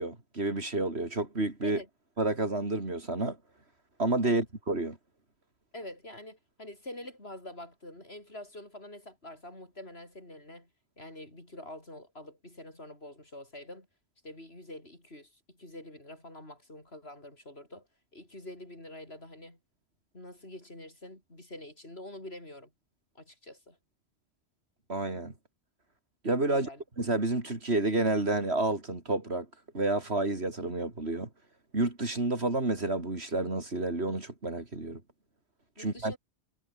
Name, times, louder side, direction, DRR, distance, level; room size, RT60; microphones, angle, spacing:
voice 1, 0.0-1.8 2.2-3.4 4.0-5.0 24.9-25.3 26.2-26.7 27.0-29.5 29.7-31.3 31.7-35.0 35.8-36.2, right 2 dB, 85° right, 4.4 m, -30 dB
voice 2, 5.7-10.7 11.0-13.9 14.2-17.9 18.1-19.6 20.1-22.7 23.1-23.8 26.4-26.8 35.8-36.2, left 1 dB, 75° left, 8.2 m, -46 dB
omnidirectional pair, 1.1 m